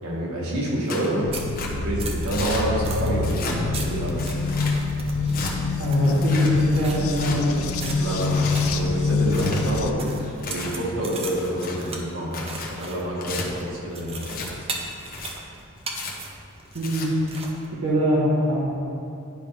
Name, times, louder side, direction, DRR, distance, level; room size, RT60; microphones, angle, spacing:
voice 1, 0.0-1.3 1.7-4.2 8.0-10.1 10.4-14.5, right 1 dB, 85° right, -5 dB, 1.9 m, -28 dB
Tearing, 0.9-1.1 1.5-1.7 2.3-2.6 3.2-3.6 4.2-4.7 5.3-5.5 6.1-6.5 7.1-7.4 8.0-8.6 9.2-9.6 10.2-10.7 11.3-11.8 12.3-12.7 13.2-13.4 14.2-14.5 15.0-15.3 15.9-16.1 16.7-17.1, left 3 dB, 45° left, 1.0 m, -33 dB
sound 1, 1.0-17.7, right 3 dB, 30° right, 0.7 m, -39 dB
sound 2, 1.2-9.9, left 4 dB, 75° left, 0.5 m, -25 dB
voice 2, 5.8-7.7 16.7-17.1 17.7-18.6, equal, 70° right, -9 dB, 1.3 m, -23 dB
10.5 x 5.1 x 3.5 m, 2.6 s
head